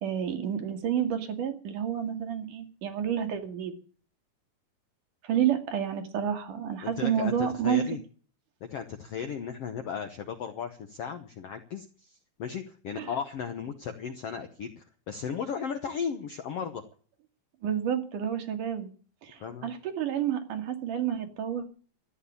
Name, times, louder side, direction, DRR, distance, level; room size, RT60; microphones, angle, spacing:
voice 1, 0.0-3.8 5.2-7.8 13.0-13.1 17.6-18.9 19.2-21.7, right 9 dB, 65° right, 5 dB, 3.3 m, -30 dB
voice 2, 6.8-8.0 8.6-16.8 19.4-19.7, left 7 dB, 70° left, 8 dB, 1.5 m, -36 dB
13.5 x 10.0 x 8.4 m, 0.42 s
omnidirectional pair, 4.1 m